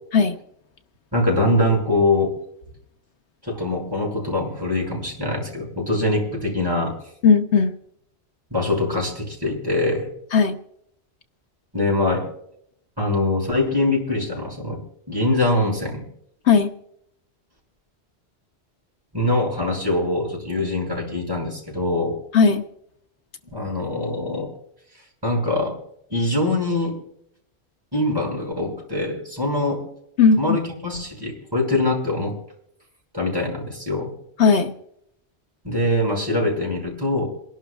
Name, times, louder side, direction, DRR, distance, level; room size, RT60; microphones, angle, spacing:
voice 1, 1.1-2.4 3.4-7.0 8.5-10.1 11.7-12.3 13.0-14.8 15.1-16.1 19.1-22.2 23.5-24.5 25.2-25.8 26.1-26.9 27.9-29.9 30.4-32.4 33.1-34.1 35.6-37.3, left 2 dB, 20° right, -2 dB, 5.9 m, -23 dB
voice 2, 7.2-7.7 10.3-10.5 16.5-16.7 22.3-22.6 30.2-30.6 34.4-34.7, left 5 dB, 80° left, 7 dB, 1.2 m, -16 dB
28.0 x 11.5 x 2.3 m, 0.72 s
omnidirectional pair, 1.1 m